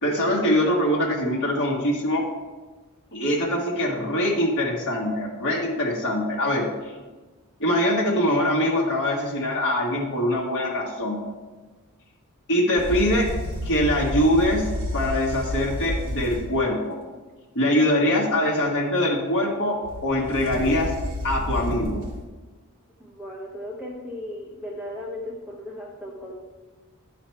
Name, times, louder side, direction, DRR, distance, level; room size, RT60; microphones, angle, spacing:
voice 1, 0.0-2.2 3.1-6.7 7.6-11.2 12.5-13.3 13.6-14.6 14.9-17.0 17.5-20.9 21.2-22.0, left 1 dB, 55° left, -3 dB, 1.4 m, -23 dB
sound 1, 12.8-16.6 19.8-22.2, left 1 dB, 60° right, 2.3 m, -30 dB
voice 2, 23.0-26.3, left 1 dB, 5° right, -3 dB, 0.9 m, -36 dB
11.0 x 4.3 x 4.4 m, 1.3 s
head